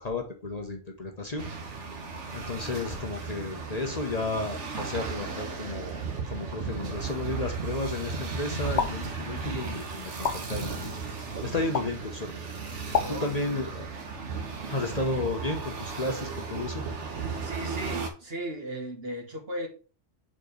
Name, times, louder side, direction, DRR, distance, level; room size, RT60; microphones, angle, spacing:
voice 1, 0.0-1.5 2.3-6.0 6.3-12.3 12.8-13.9 14.7-16.8, left 2 dB, 35° left, 3 dB, 0.9 m, -33 dB
sound 1, 1.4-18.1, right 5 dB, 65° right, 1.5 m, -35 dB
sound 2, 8.7-8.9 10.2-10.4 11.7-11.9 12.9-13.1, left 6 dB, 60° left, 1.1 m, -25 dB
voice 2, 12.9-13.6 14.6-14.9 17.4-19.7, right 1 dB, 50° right, 2 dB, 1.6 m, -37 dB
4.9 x 4.4 x 5.1 m, 0.36 s
omnidirectional pair, 1.3 m